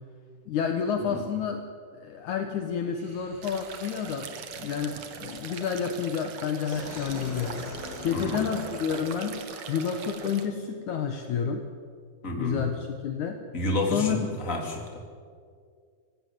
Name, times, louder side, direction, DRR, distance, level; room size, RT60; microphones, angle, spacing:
voice 1, 0.5-1.6 2.0-4.3 4.6-7.6 8.0-9.4 9.7-11.7 12.4-13.4 13.9-14.2, left 7 dB, 70° left, 5 dB, 1.8 m, -29 dB
sound 1, 2.2-9.2, left 4 dB, 55° left, 3.3 m, -45 dB
Laughter, 2.9-10.5, right 2 dB, 45° right, 6.7 m, -46 dB
sound 2, 3.4-10.5, right 6 dB, 65° right, 1.7 m, -41 dB
voice 2, 12.2-12.6 13.5-14.2 14.4-15.0, left 1 dB, 20° left, 1 dB, 3.2 m, -29 dB
25.5 x 17.5 x 7.8 m, 2.2 s
omnidirectional pair, 5.2 m